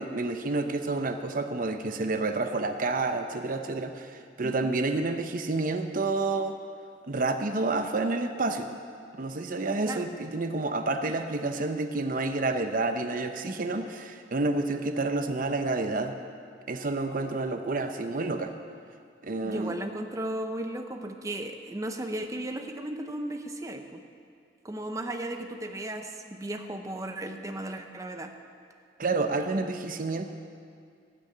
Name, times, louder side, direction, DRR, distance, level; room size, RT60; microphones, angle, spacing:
voice 1, 0.0-6.6 7.0-8.7 9.2-16.1 16.7-18.5 19.2-19.7 29.0-30.3, right 3 dB, 50° right, 7 dB, 0.8 m, -29 dB
voice 2, 4.4-4.7 9.8-10.1 19.4-24.0 24.6-28.3, right 1 dB, 20° right, 5 dB, 0.8 m, -35 dB
17.5 x 6.6 x 8.5 m, 2.2 s
head